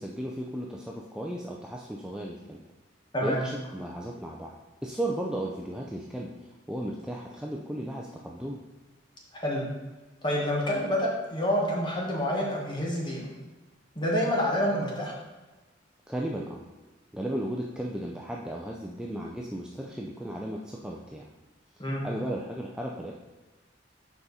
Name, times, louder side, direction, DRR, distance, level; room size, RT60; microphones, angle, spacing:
voice 1, 0.0-2.6 3.2-4.6 4.8-8.6 16.1-16.6 17.1-21.3 22.0-23.1, right 1 dB, 5° right, -2 dB, 0.5 m, -35 dB
voice 2, 9.3-9.6 10.2-13.3 13.9-15.1 21.8-22.0, equal, 25° left, -3 dB, 1.7 m, -28 dB
7.2 x 5.1 x 4.1 m, 1.2 s
head